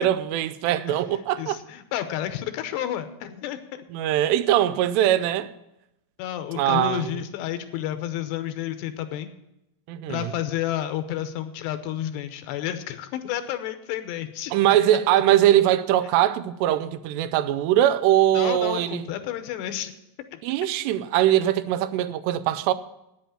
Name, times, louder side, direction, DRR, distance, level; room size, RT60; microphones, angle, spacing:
voice 1, 0.0-1.6 3.9-5.5 6.5-7.1 9.9-10.3 14.5-19.1 20.4-22.7, right 12 dB, 85° right, 2.7 m, -21 dB
voice 2, 1.4-3.8 6.2-9.3 10.1-14.5 18.3-19.9 20.3-20.4, left 11 dB, 85° left, 3.0 m, -30 dB
9.4 x 7.9 x 9.0 m
omnidirectional pair, 4.9 m